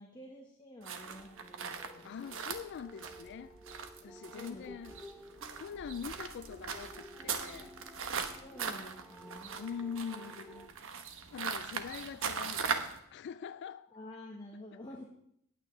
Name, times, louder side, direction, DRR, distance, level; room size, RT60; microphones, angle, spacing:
voice 1, 0.0-2.2 4.3-4.7 8.4-9.6 13.9-15.0, left 1 dB, 20° left, 1.3 m, -49 dB
sound 1, 0.8-13.0, right 6 dB, 65° right, 1.1 m, -40 dB
sound 2, 1.0-10.7, equal, ahead, 0.7 m, -54 dB
voice 2, 2.0-3.6 4.0-5.0 5.5-7.8 9.6-10.8 11.3-13.9, left 7 dB, 55° left, 0.3 m, -43 dB
18.0 x 9.1 x 3.3 m
head